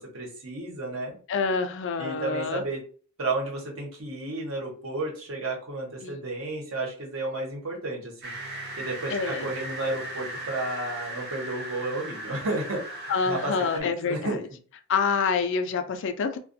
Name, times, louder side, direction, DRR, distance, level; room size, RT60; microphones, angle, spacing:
voice 1, 0.0-1.2 2.0-2.8 3.2-8.3 8.8-14.4, right 2 dB, 85° right, -1 dB, 1.0 m, -32 dB
voice 2, 1.3-2.6 6.0-6.2 9.1-9.5 13.1-14.4 14.9-16.4, left 5 dB, 60° left, 8 dB, 0.4 m, -27 dB
sound 1, 8.2-13.8, right 1 dB, 55° right, 0.6 m, -37 dB
2.3 x 2.2 x 2.6 m, 0.41 s
head